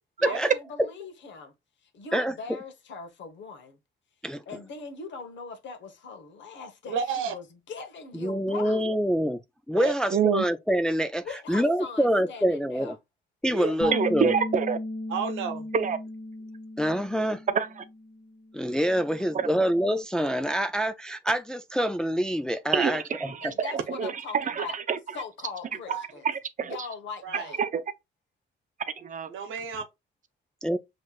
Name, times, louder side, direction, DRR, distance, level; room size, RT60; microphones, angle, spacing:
voice 1, 0.2-1.5 1.8-3.8 4.5-8.8 11.2-12.9 23.4-24.8 25.1-26.3 26.6-27.6, left 5 dB, 65° left, 1.2 m, -41 dB
voice 2, 6.9-7.3 9.7-9.9 13.5-14.0 15.1-15.7 25.9-26.1 27.2-27.5 29.3-29.8, right 6 dB, 85° right, 0.9 m, -31 dB
voice 3, 8.1-9.4 9.7-11.2 11.5-13.0 13.4-14.3 16.8-17.4 18.5-23.5 30.6-30.8, equal, 5° left, 0.3 m, -26 dB
voice 4, 10.1-10.4 13.9-14.8 15.7-16.0 17.5-17.7 22.7-25.0 26.2-26.8 27.6-27.8 29.0-29.3, right 7 dB, 40° right, 0.6 m, -26 dB
Bass guitar, 13.8-20.0, left 1 dB, 45° left, 1.1 m, -37 dB
5.7 x 3.2 x 2.3 m
cardioid pair, 90°, 20 cm